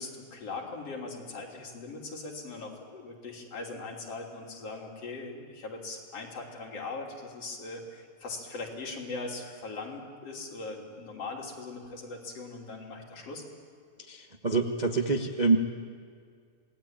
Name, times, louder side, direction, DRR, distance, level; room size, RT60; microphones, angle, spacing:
voice 1, 0.0-13.4, left 3 dB, 55° left, -1 dB, 4.3 m, -40 dB
voice 2, 14.1-15.6, right 3 dB, 70° right, 2 dB, 0.4 m, -26 dB
27.5 x 19.5 x 9.1 m, 2.2 s
omnidirectional pair, 3.3 m